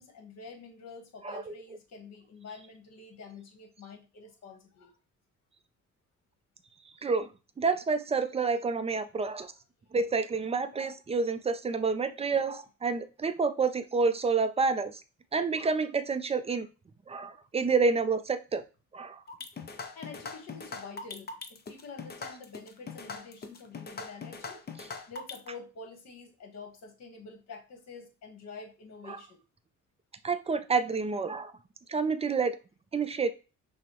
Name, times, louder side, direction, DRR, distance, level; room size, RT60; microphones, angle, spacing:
voice 1, 0.0-4.9 9.2-9.3 19.9-24.6 25.1-29.4, left 4 dB, 60° left, 3 dB, 1.3 m, -47 dB
voice 2, 7.6-9.5 9.9-15.0 15.3-16.7 17.1-18.6 18.9-19.2 29.1-29.2 30.2-31.5 31.9-32.6 32.9-33.3, right 4 dB, 20° right, 11 dB, 0.4 m, -28 dB
sound 1, 19.3-25.5, left 4 dB, 35° left, 0.6 m, -41 dB
5.9 x 2.1 x 3.0 m, 0.31 s
cardioid pair, 90°, 30 cm